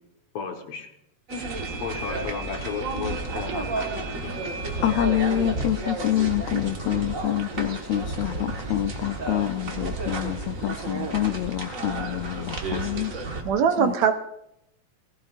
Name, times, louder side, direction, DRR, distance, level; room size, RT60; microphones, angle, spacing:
voice 1, 0.3-0.9 1.8-4.4, left 6 dB, 65° left, 4 dB, 2.2 m, -34 dB
sound 1, 1.3-13.4, right 3 dB, 45° right, 1.1 m, -32 dB
voice 2, 4.8-13.1 13.8-13.9, left 13 dB, 90° left, 9 dB, 1.4 m, -26 dB
voice 3, 13.1-14.1, right 7 dB, 75° right, 8 dB, 1.9 m, -22 dB
19.0 x 16.0 x 2.5 m, 0.80 s
omnidirectional pair, 3.5 m